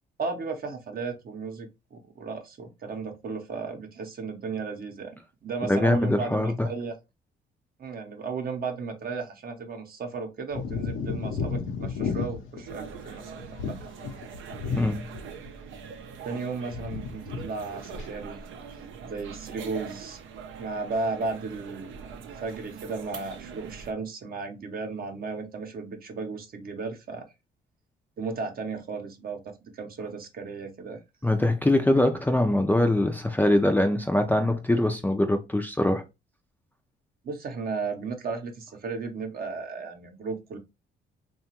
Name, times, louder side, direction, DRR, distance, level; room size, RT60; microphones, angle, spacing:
voice 1, 0.2-6.9 7.8-13.9 16.2-18.4 19.0-20.2 20.6-27.2 28.2-31.0 37.2-40.6, right 4 dB, 50° right, 0.7 m, -35 dB
voice 2, 5.6-6.7 14.8-15.1 31.2-36.0, left 1 dB, 10° left, 0.4 m, -23 dB
sound 1, 10.5-15.5 15.8-16.4 16.7-17.5 17.7-18.1, left 5 dB, 85° left, 0.7 m, -33 dB
sound 2, 12.7-23.9, right 6 dB, 80° right, 0.5 m, -43 dB
2.8 x 2.2 x 2.8 m
cardioid pair, 90°, 20 cm